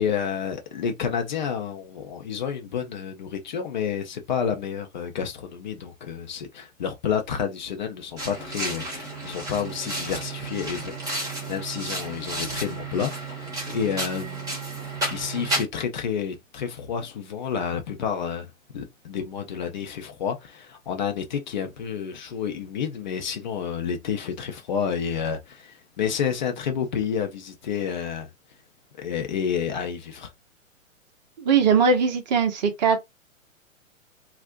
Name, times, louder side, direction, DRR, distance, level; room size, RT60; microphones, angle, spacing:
voice 1, 0.0-14.6 15.1-28.3 29.0-30.3, left 7 dB, 35° left, 0.5 m, -30 dB
sound 1, 8.2-15.6, right 2 dB, 10° right, 0.9 m, -32 dB
voice 2, 31.4-33.0, right 5 dB, 35° right, 0.6 m, -20 dB
2.4 x 2.0 x 2.5 m
figure-of-eight pair, 115°, 40 cm